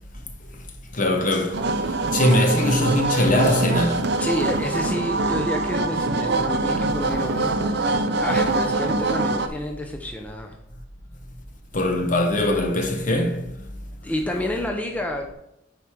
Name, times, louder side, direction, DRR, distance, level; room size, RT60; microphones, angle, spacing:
voice 1, 0.9-1.6 2.1-4.0 11.7-13.4, left 1 dB, 45° left, 1.1 m, -21 dB
sound 1, 1.5-9.5, right 2 dB, 60° right, 0.7 m, -24 dB
voice 2, 4.2-10.6 14.0-15.3, left 1 dB, 10° left, 0.7 m, -29 dB
9.4 x 4.9 x 4.6 m
head